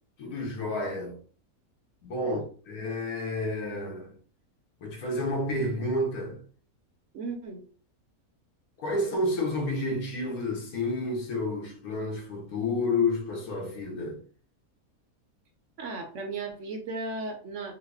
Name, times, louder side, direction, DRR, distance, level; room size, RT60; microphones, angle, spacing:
voice 1, 0.2-1.2 2.0-4.1 4.8-6.4 8.8-14.2, left 2 dB, 80° left, 1.4 m, -30 dB
voice 2, 7.1-7.6 15.8-17.7, right 3 dB, 65° right, 0.9 m, -36 dB
3.8 x 2.0 x 3.4 m
omnidirectional pair, 1.6 m